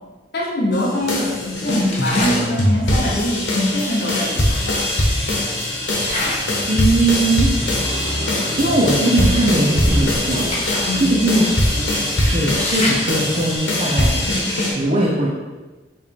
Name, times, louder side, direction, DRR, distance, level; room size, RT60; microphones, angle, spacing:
voice 1, 0.3-4.9 10.8-11.2, left 1 dB, 60° left, -2 dB, 0.9 m, -23 dB
sound 1, 0.7-14.7, left 1 dB, 85° left, 1.1 m, -22 dB
Motorcycle, 1.0-13.6, equal, 60° right, 1.3 m, -34 dB
sound 2, 1.9-2.5 3.7-3.8 4.2-5.4 5.8-6.6 7.0-7.3 7.9-8.0 8.4-8.6 9.1-11.0 11.4-11.5 11.9-14.5, left 1 dB, 35° left, 1.1 m, -27 dB
voice 2, 6.7-7.7 8.6-10.5 11.0-15.3, right 1 dB, 40° right, -4 dB, 0.7 m, -20 dB
4.7 x 3.1 x 3.6 m, 1.2 s
head